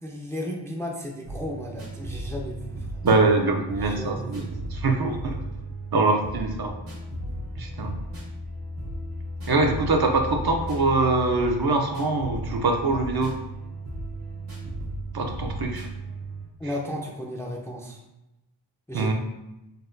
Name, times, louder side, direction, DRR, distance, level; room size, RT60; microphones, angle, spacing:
voice 1, 0.0-3.0 3.7-4.5 16.6-18.0 18.9-19.1, left 1 dB, 5° left, 0 dB, 0.4 m, -34 dB
sound 1, 1.3-16.4, right 1 dB, 85° right, 1.3 m, -35 dB
voice 2, 3.0-5.4 5.9-6.7 7.6-8.0 9.5-13.4 15.1-15.9 18.9-19.1, right 3 dB, 50° right, 3 dB, 0.5 m, -23 dB
4.1 x 2.2 x 2.5 m, 0.93 s
wide cardioid pair, 60°, 48 cm